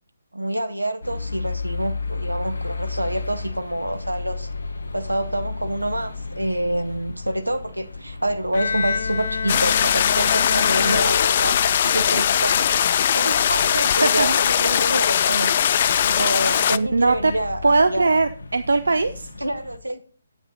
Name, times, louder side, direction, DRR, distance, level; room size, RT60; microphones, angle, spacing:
voice 1, 0.3-4.5 4.9-12.6 13.1-15.5 16.0-18.1 19.4-20.0, right 1 dB, 80° right, 8 dB, 1.3 m, -27 dB
sound 1, 1.0-19.8, left 4 dB, 70° left, 1.3 m, -34 dB
Bowed string instrument, 8.5-11.9, left 6 dB, 50° left, 1.5 m, -28 dB
sound 2, 9.5-16.8, left 9 dB, 35° left, 0.4 m, -20 dB
voice 2, 13.9-14.4 15.9-16.1 16.7-17.3 17.6-19.3, right 3 dB, 65° right, 11 dB, 0.6 m, -21 dB
9.0 x 8.9 x 4.0 m, 0.40 s
figure-of-eight pair, 140°, 0 cm